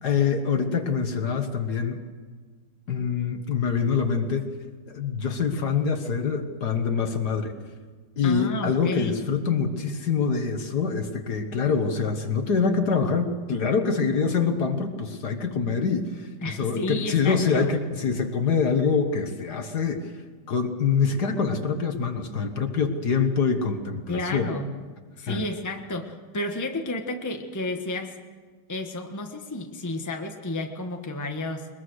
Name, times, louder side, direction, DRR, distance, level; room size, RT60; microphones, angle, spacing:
voice 1, 0.0-2.0 2.9-4.5 4.9-7.5 8.2-20.1 20.5-24.5 25.3-25.5, left 5 dB, 55° left, 6 dB, 1.9 m, -25 dB
voice 2, 8.2-9.1 16.4-17.7 24.1-24.7 25.2-28.1 28.7-31.7, left 2 dB, 10° left, 3 dB, 1.2 m, -31 dB
22.0 x 21.5 x 6.4 m, 1.5 s
omnidirectional pair, 2.1 m